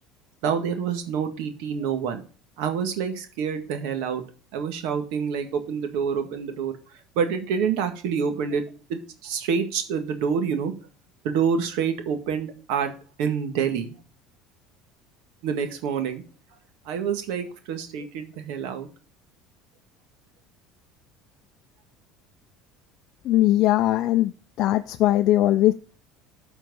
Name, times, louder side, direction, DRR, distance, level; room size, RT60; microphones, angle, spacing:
voice 1, 0.4-2.2 2.6-4.2 4.5-6.7 7.1-8.6 8.9-10.7 11.2-12.9 13.2-13.9 15.4-16.2 16.8-18.9, right 6 dB, 70° right, 1.7 m, -27 dB
voice 2, 23.2-24.3 24.6-25.7, left 14 dB, 50° left, 0.4 m, -20 dB
12.5 x 4.5 x 5.4 m
cardioid pair, 150°, 0 cm